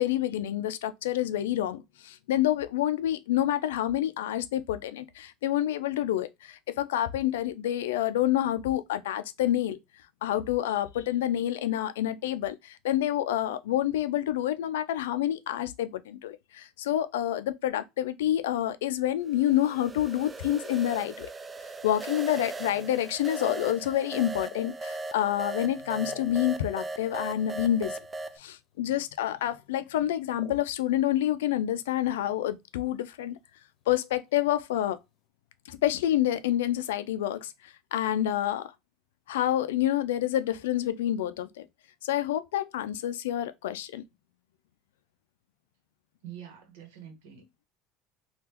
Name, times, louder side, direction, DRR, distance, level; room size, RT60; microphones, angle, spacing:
voice 1, 0.0-9.8 10.2-21.3 21.8-28.0 28.4-33.4 33.9-35.0 35.7-38.7 39.3-41.7 42.0-44.0, left 12 dB, 90° left, 0.4 m, -28 dB
sound 1, 19.3-28.4, right 2 dB, 25° right, 0.3 m, -38 dB
sound 2, 23.4-25.1 25.5-27.0 27.8-27.9 28.1-28.4 28.7-29.1 29.4-29.7 30.3-31.3 31.6-32.5 32.8-32.9 33.3-33.6 34.0-34.4, left 6 dB, 55° left, 0.8 m, -45 dB
voice 2, 46.2-47.7, right 9 dB, 85° right, 1.1 m, -46 dB
3.5 x 2.4 x 2.9 m
supercardioid pair, 90°, 0 cm